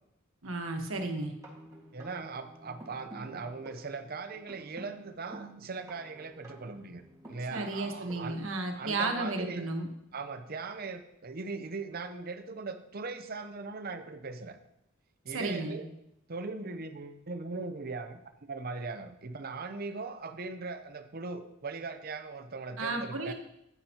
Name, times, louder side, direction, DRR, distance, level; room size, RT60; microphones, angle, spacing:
voice 1, 0.4-1.3 7.5-9.9 15.3-15.8 22.8-23.3, right 2 dB, 85° right, 3 dB, 1.3 m, -33 dB
sound 1, 1.2-8.5, right 1 dB, 15° right, 1.8 m, -50 dB
voice 2, 1.9-7.0 7.3-8.5 8.7-9.7 10.1-14.6 15.2-15.9 16.3-18.2 18.5-23.3, right 4 dB, 50° right, 8 dB, 0.7 m, -39 dB
9.9 x 9.4 x 2.9 m, 0.81 s
head